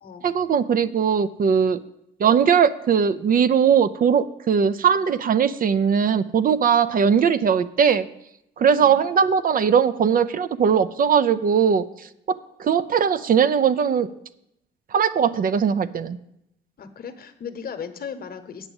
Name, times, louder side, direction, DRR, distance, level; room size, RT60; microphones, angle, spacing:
voice 1, 0.2-1.8 2.2-8.1 8.6-11.8 12.3-14.1 14.9-16.2, right 7 dB, 45° right, 14 dB, 0.4 m, -20 dB
voice 2, 8.6-9.0 16.8-18.7, left 6 dB, 50° left, 8 dB, 1.0 m, -37 dB
8.9 x 5.9 x 7.0 m, 0.81 s
cardioid pair, 90°, 20 cm